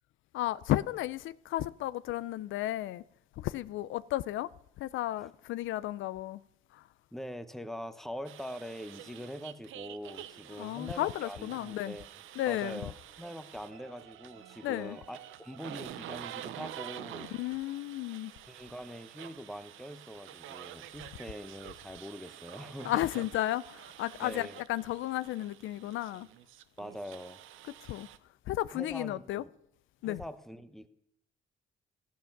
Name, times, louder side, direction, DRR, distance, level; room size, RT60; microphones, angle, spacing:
voice 1, 0.3-3.0 3.4-4.5 4.8-6.4 6.7-6.8 10.6-12.0 12.4-12.8 14.6-15.0 17.4-18.3 22.8-26.3 27.9-28.1 28.5-29.4 30.0-30.2, left 15 dB, 80° left, 0.4 m, -33 dB
voice 2, 7.1-12.1 12.5-17.3 18.5-23.2 24.2-24.6 26.8-27.4 28.7-29.5 30.0-30.9, equal, ahead, 0.9 m, -43 dB
sound 1, 8.2-28.2, right 12 dB, 85° right, 0.7 m, -48 dB
13.0 x 9.4 x 5.9 m
cardioid pair, 90°, 20 cm